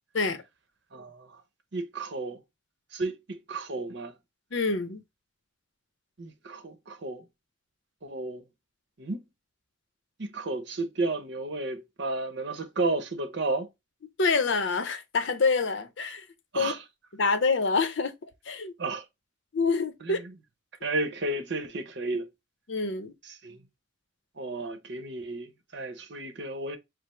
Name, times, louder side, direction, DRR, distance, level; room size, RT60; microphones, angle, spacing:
voice 1, 0.9-1.4 1.7-2.4 2.9-4.1 6.2-7.2 8.0-8.4 9.0-9.2 10.2-13.7 16.5-16.8 18.8-19.0 20.0-20.3 20.8-22.3 23.2-23.6 24.4-26.8, right 2 dB, 60° right, 0.8 m, -33 dB
voice 2, 4.5-5.0 14.2-16.2 16.5-16.7 17.1-18.1 18.5-18.7 19.5-20.2 22.7-23.1, left 4 dB, 60° left, 0.7 m, -26 dB
4.9 x 2.0 x 4.3 m
head